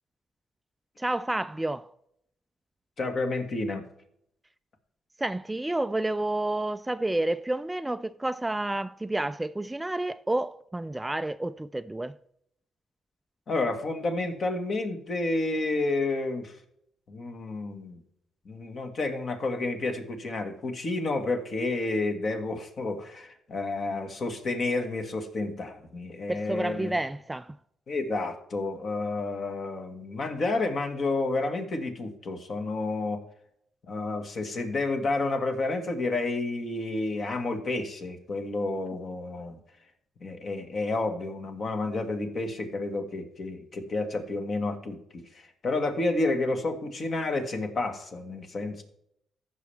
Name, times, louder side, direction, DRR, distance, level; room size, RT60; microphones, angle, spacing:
voice 1, 1.0-1.9 5.2-12.2 26.3-27.6, right 1 dB, 10° right, 0.3 m, -30 dB
voice 2, 3.0-3.9 13.5-16.6 17.1-18.0 18.5-26.9 27.9-33.2 33.8-39.6 40.2-48.8, left 2 dB, 50° left, 1.7 m, -30 dB
15.0 x 5.8 x 3.5 m
cardioid pair, 90°, 0 cm